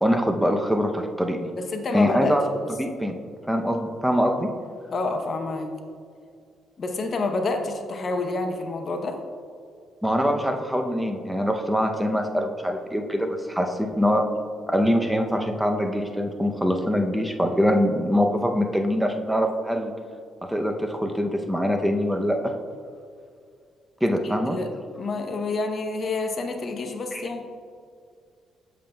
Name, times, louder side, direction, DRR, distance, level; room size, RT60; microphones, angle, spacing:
voice 1, 0.0-1.5 1.9-2.4 2.8-3.2 3.5-4.5 10.0-14.3 14.7-19.9 20.4-22.5 24.0-24.6 27.1-27.2, equal, 5° right, 4 dB, 0.6 m, -23 dB
voice 2, 1.6-2.4 2.6-2.7 4.9-5.7 6.8-9.2 24.2-24.7 25.0-27.4, left 3 dB, 45° left, 5 dB, 0.8 m, -28 dB
7.5 x 6.9 x 2.3 m, 2.2 s
cardioid pair, 90°, 0 cm